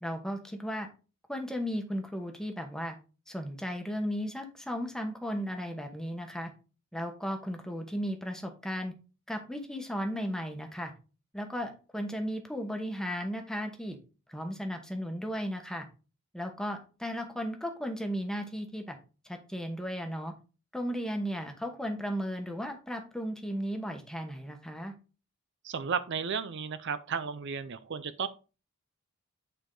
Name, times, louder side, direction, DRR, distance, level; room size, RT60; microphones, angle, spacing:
voice 1, 0.0-0.9 1.3-2.9 3.3-6.5 6.9-8.9 9.3-10.9 11.3-14.0 14.3-15.9 16.3-19.0 19.2-20.3 20.7-24.9, equal, 5° left, 4 dB, 1.2 m, -35 dB
voice 2, 25.6-28.3, right 6 dB, 55° right, 13 dB, 0.5 m, -33 dB
9.0 x 4.7 x 3.8 m, 0.33 s
head